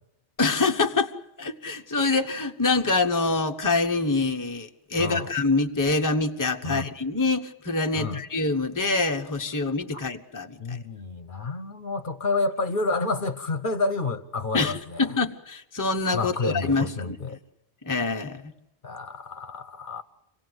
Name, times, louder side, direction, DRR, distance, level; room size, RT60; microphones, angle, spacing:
voice 1, 0.4-1.1 1.4-10.8 14.5-17.2 17.8-18.4, left 3 dB, 20° left, 4 dB, 1.0 m, -25 dB
voice 2, 5.0-5.3 6.6-6.9 7.9-8.2 9.9-10.0 10.6-15.1 16.1-17.4 18.8-20.0, left 3 dB, 50° left, 9 dB, 1.1 m, -29 dB
26.5 x 17.5 x 7.9 m, 0.89 s
omnidirectional pair, 1.1 m